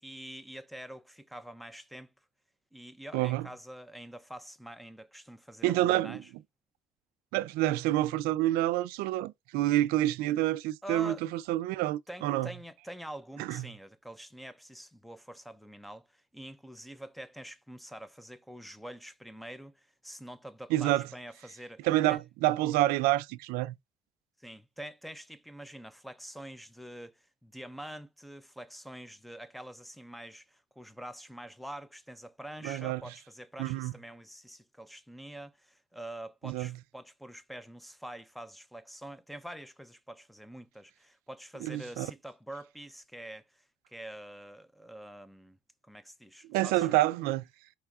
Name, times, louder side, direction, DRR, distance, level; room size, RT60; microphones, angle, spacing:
voice 1, 0.0-2.1 2.7-6.3 10.8-11.2 12.1-22.2 24.4-45.6 45.8-47.0, right 1 dB, ahead, 0.3 m, -46 dB
voice 2, 3.1-3.5 5.6-6.2 7.3-12.5 13.4-13.7 20.7-21.1 21.8-23.8 32.6-33.0 33.6-33.9 36.4-36.8 41.6-42.1 46.5-47.5, right 15 dB, 85° right, 0.4 m, -28 dB
4.7 x 3.1 x 3.5 m
cardioid pair, 155°, 16 cm